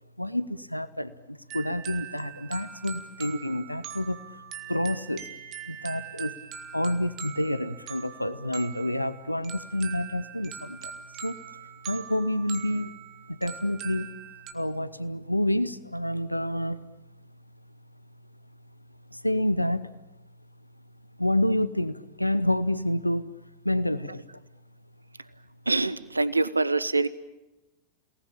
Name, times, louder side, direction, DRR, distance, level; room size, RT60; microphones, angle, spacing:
voice 1, 0.2-4.2 4.7-5.3 5.7-6.3 6.7-10.9 11.2-11.3 11.9-12.9 13.3-14.1 14.5-16.8 19.1-19.9 21.2-23.3 23.6-24.2, left 1 dB, 90° left, 15 dB, 0.9 m, -28 dB
sound 1, 1.5-14.5, right 9 dB, 35° right, 2.4 m, -42 dB
voice 2, 25.7-27.1, right 3 dB, 80° right, 18 dB, 0.9 m, -25 dB
29.0 x 19.5 x 8.8 m, 0.99 s
figure-of-eight pair, 90°, 0 cm